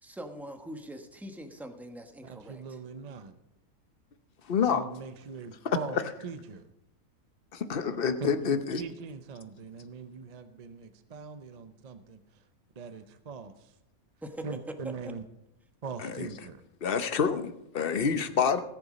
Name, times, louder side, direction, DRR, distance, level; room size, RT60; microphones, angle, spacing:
voice 1, 0.0-2.8 8.2-8.5 14.2-14.4 14.8-15.1, right 1 dB, ahead, 5 dB, 0.9 m, -43 dB
voice 2, 2.2-3.4 4.6-6.0 6.2-6.6 8.2-12.2 12.8-13.7 14.4-15.2 15.8-16.6, right 5 dB, 40° right, 10 dB, 0.6 m, -41 dB
voice 3, 4.5-4.9 5.9-6.0 7.5-8.8 16.0-16.3 16.8-18.6, left 6 dB, 45° left, 10 dB, 0.9 m, -27 dB
18.0 x 6.9 x 5.1 m, 0.84 s
omnidirectional pair, 1.5 m